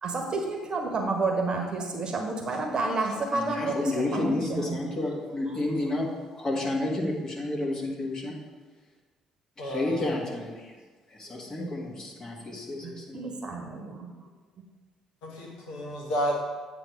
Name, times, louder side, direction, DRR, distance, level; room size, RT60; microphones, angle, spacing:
voice 1, 0.0-4.8 5.4-5.9 12.8-14.1, right 3 dB, 40° right, 2 dB, 1.1 m, -30 dB
voice 2, 3.3-8.4 9.6-10.7 11.1-13.2, left 2 dB, 30° left, -1 dB, 1.6 m, -31 dB
voice 3, 9.6-10.1 15.2-16.4, equal, 65° left, -2 dB, 1.4 m, -31 dB
8.2 x 3.4 x 5.2 m, 1.3 s
figure-of-eight pair, 45°, 2 cm